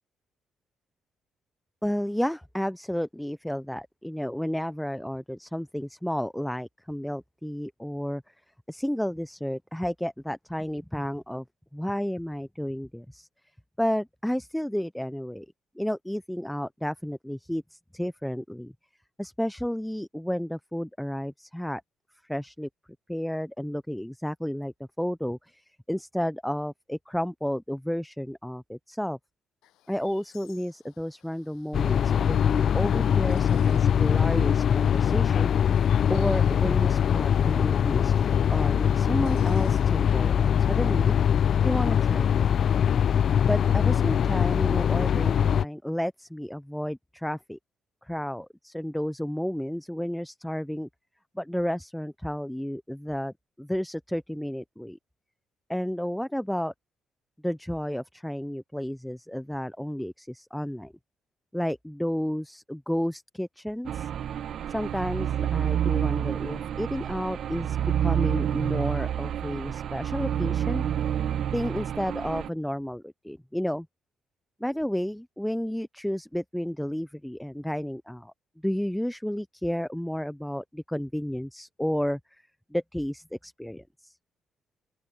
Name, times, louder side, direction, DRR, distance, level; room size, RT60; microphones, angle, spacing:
voice 1, 1.8-8.2 8.7-11.4 11.7-13.3 13.8-15.5 15.8-18.7 19.2-21.8 22.2-22.7 23.1-29.2 29.9-35.5 36.1-41.2 41.6-42.5 43.4-47.6 48.0-50.9 51.3-55.0 55.7-56.7 57.4-60.9 61.5-64.1 64.7-70.9 71.5-73.9 74.6-78.3 78.6-82.4 82.7-84.1, equal, 5° left, 0.6 m, -32 dB
Chirp tweet, 29.6-40.3, left 15 dB, 90° left, 7.7 m, -59 dB
sound 1, 31.7-45.6, left 8 dB, 60° left, 0.4 m, -22 dB
sound 2, 63.9-72.5, right 10 dB, 65° right, 1.1 m, -28 dB
open air
cardioid pair, 90°, 0 cm